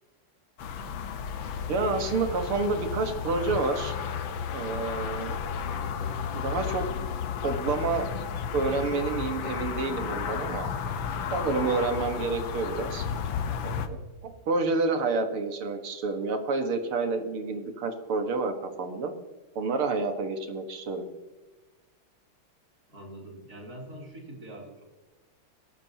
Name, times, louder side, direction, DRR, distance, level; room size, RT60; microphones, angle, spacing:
sound 1, 0.6-13.9, left 7 dB, 70° left, 1.7 m, -33 dB
voice 1, 1.7-3.9 4.5-5.4 6.3-6.8 7.4-8.1 8.5-10.7 11.3-13.1 13.6-19.2 19.6-21.0, right 3 dB, 90° right, 6 dB, 2.5 m, -29 dB
voice 2, 22.9-24.8, right 1 dB, 45° right, -1 dB, 3.8 m, -44 dB
22.0 x 12.5 x 2.9 m, 1.2 s
omnidirectional pair, 2.3 m